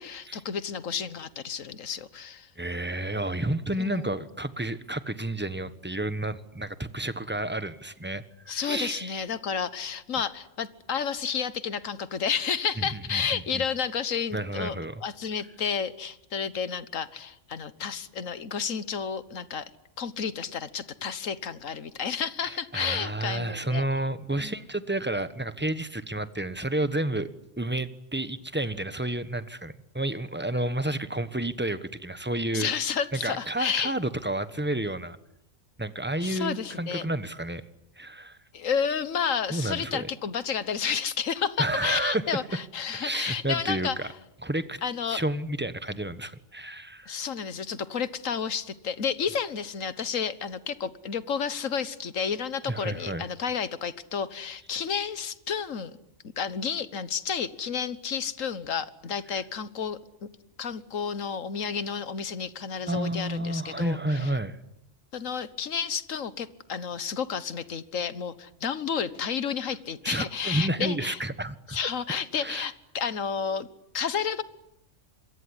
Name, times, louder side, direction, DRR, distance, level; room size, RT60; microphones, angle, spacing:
voice 1, 0.0-2.5 3.8-4.2 8.5-14.8 15.0-19.7 20.0-23.8 24.4-24.6 32.5-33.9 36.2-37.1 38.5-44.1 44.8-45.2 47.1-56.0 56.4-60.3 60.6-64.3 65.1-71.2 71.7-73.7 73.9-74.4, left 7 dB, 85° left, 15 dB, 1.6 m, -31 dB
voice 2, 2.6-9.2 12.8-12.9 13.1-13.6 14.3-15.0 22.4-27.3 27.6-32.7 33.1-35.2 35.8-37.6 38.0-38.4 39.5-40.1 41.6-42.2 42.9-44.1 44.4-44.8 45.1-47.2 52.7-53.3 59.3-59.4 62.9-64.6 70.0-71.8 72.4-72.6, right 1 dB, 10° right, 12 dB, 1.2 m, -30 dB
26.5 x 23.0 x 9.8 m, 0.83 s
omnidirectional pair, 1.3 m